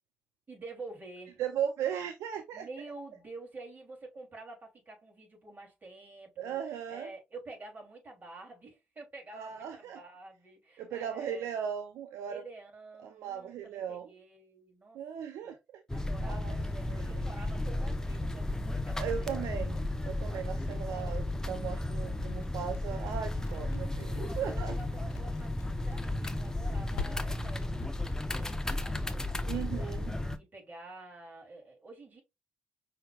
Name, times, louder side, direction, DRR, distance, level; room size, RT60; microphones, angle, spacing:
voice 1, 0.5-1.4 2.5-11.6 12.3-15.0 15.4-15.6 15.9-19.5 20.6-21.2 23.4-23.8 24.1-30.0 30.4-32.2, right 2 dB, 35° right, 3.0 m, -49 dB
voice 2, 1.4-2.7 6.4-7.1 9.3-10.0 10.8-12.4 13.0-14.1 14.9-15.8 16.2-16.6 16.9-17.1 19.0-24.7 29.5-30.1, right 8 dB, 75° right, 0.5 m, -37 dB
sound 1, 15.9-30.4, left 1 dB, 10° left, 0.6 m, -34 dB
sound 2, 17.2-28.1, left 5 dB, 80° left, 1.2 m, -49 dB
5.5 x 3.3 x 2.3 m
supercardioid pair, 55°, 5 cm